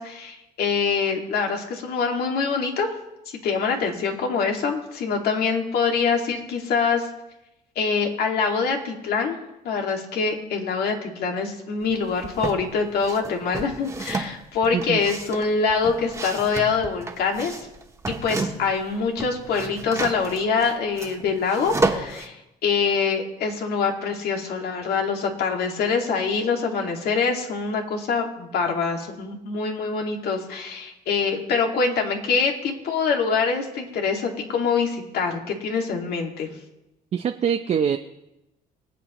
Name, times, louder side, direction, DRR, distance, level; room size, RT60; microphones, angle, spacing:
voice 1, 0.0-2.9 3.4-7.1 7.8-9.4 9.6-17.6 18.1-22.3 22.6-36.5, left 5 dB, 70° left, 2 dB, 2.2 m, -24 dB
sound 1, 11.9-12.6 13.0-18.8 19.1-22.3, right 3 dB, 15° right, 1.5 m, -31 dB
voice 2, 37.1-38.0, right 8 dB, 40° right, 6 dB, 0.7 m, -23 dB
25.0 x 8.4 x 3.1 m, 0.92 s
cardioid pair, 110°, 17 cm